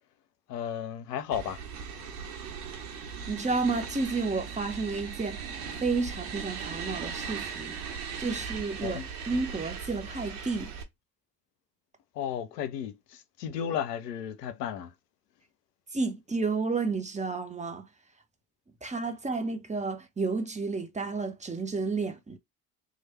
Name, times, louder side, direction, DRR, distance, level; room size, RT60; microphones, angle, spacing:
voice 1, 0.5-1.6 8.8-9.1 12.2-14.9, left 9 dB, 80° left, 0.6 m, -34 dB
sound 1, 1.3-10.8, right 6 dB, 70° right, 1.1 m, -38 dB
voice 2, 3.3-5.4 5.8-7.8 8.2-9.0 9.3-10.7 15.9-17.9 18.8-22.4, right 4 dB, 15° right, 0.8 m, -31 dB
3.1 x 2.4 x 4.2 m
figure-of-eight pair, 55°, 47 cm